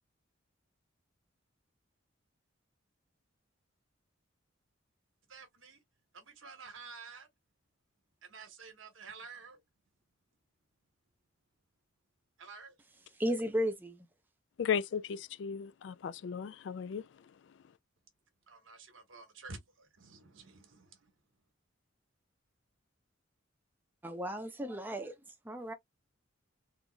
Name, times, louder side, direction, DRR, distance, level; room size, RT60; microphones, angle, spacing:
voice 1, 5.3-5.8 6.1-7.3 8.2-9.6 12.4-12.7 18.5-21.0, right 4 dB, 80° right, 1.3 m, -50 dB
voice 2, 13.2-14.1 24.0-25.1 25.4-25.7, equal, 10° right, 0.6 m, -34 dB
voice 3, 14.6-17.0, left 7 dB, 60° left, 0.3 m, -35 dB
3.8 x 2.9 x 2.2 m
head